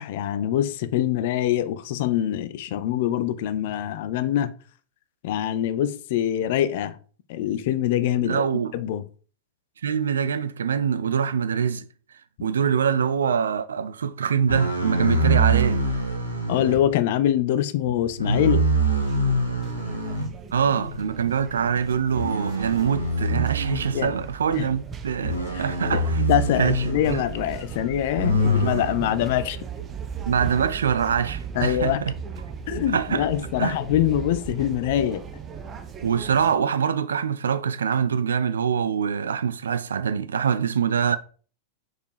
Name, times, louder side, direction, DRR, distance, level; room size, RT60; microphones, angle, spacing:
voice 1, 0.0-4.5 5.2-7.0 7.3-8.4 8.7-9.0 16.5-18.7 23.9-24.1 24.5-24.7 25.5-25.6 25.9-26.0 26.3-29.6 31.6-32.0 32.7-35.2, left 11 dB, 50° left, 0.5 m, -24 dB
voice 2, 8.2-8.7 9.8-11.8 12.4-15.8 20.5-26.2 26.6-27.2 30.3-32.1 32.9-33.3 33.6-33.7 36.0-41.2, right 7 dB, 70° right, 0.4 m, -24 dB
sound 1, 14.5-16.8 17.8-20.3 20.8-21.0 22.1-24.3 25.2-27.2 28.2-29.0, right 1 dB, 90° right, 1.3 m, -24 dB
sound 2, 19.0-36.6, right 7 dB, 25° right, 0.7 m, -37 dB
4.9 x 4.5 x 4.7 m
figure-of-eight pair, 90°, 0 cm